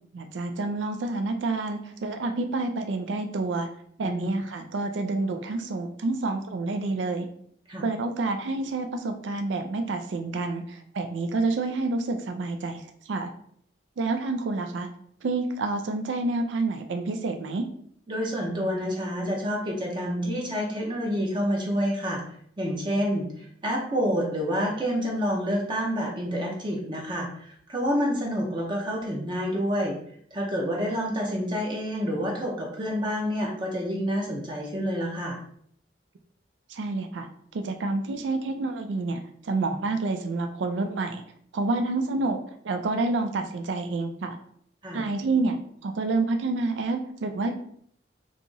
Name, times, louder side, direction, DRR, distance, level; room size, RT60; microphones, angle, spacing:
voice 1, 0.1-3.7 4.0-7.3 7.8-13.3 14.0-14.9 15.2-17.7 36.7-37.3 37.5-41.2 41.5-42.4 42.6-44.4 44.9-47.6, right 3 dB, 85° right, 6 dB, 0.4 m, -28 dB
voice 2, 18.1-22.2 22.6-30.0 30.3-35.4 44.8-45.1, equal, 25° right, -1 dB, 0.6 m, -28 dB
2.9 x 2.4 x 3.8 m, 0.65 s
head